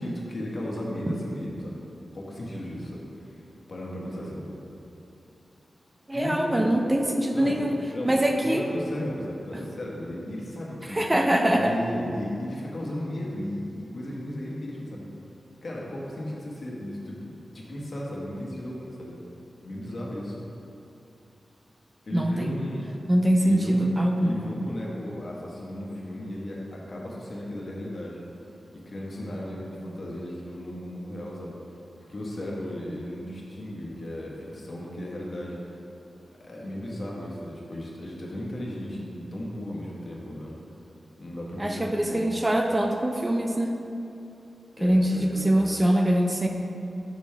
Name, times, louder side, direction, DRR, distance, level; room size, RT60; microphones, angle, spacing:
voice 1, 0.0-1.8 2.1-3.4 3.7-4.6 6.1-6.8 7.3-7.6 7.9-8.1 8.4-11.0 11.5-15.1 15.6-19.1 19.6-20.4 22.1-22.9 23.4-23.9 24.2-28.2 28.7-31.6 32.1-35.6 36.3-40.6 41.2-42.3 44.7-45.9, left 1 dB, 50° left, -4 dB, 1.3 m, -35 dB
voice 2, 6.1-7.8 8.1-8.6 10.9-11.7 22.1-22.5 23.1-24.4 41.6-43.7 44.8-46.5, right 1 dB, 15° right, 2 dB, 0.4 m, -23 dB
6.1 x 5.4 x 4.6 m, 2.8 s
wide cardioid pair, 105°, 0 cm